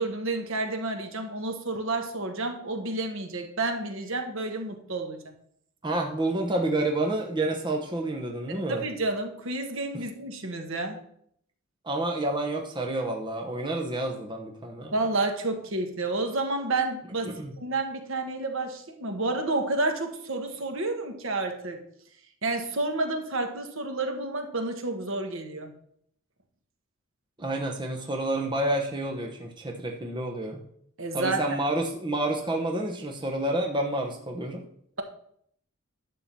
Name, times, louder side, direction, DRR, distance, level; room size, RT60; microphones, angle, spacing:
voice 1, 0.0-5.2 8.5-11.0 14.9-17.3 17.6-21.8 22.4-25.7 31.0-31.4, right 2 dB, 65° right, 4 dB, 1.4 m, -30 dB
voice 2, 5.8-8.8 11.8-14.9 17.3-17.5 27.4-30.6 31.1-34.6, right 1 dB, 20° right, 2 dB, 0.9 m, -29 dB
11.0 x 3.8 x 7.3 m, 0.68 s
head